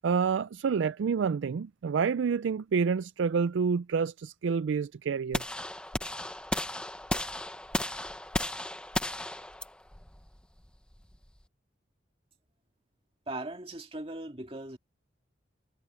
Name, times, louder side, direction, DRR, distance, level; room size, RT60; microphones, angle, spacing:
voice 1, 0.0-5.4, right 6 dB, 80° right, 0.4 m, -28 dB
sound 1, 5.3-11.4, left 1 dB, 5° left, 0.8 m, -35 dB
voice 2, 13.3-14.8, right 2 dB, 30° right, 2.2 m, -39 dB
head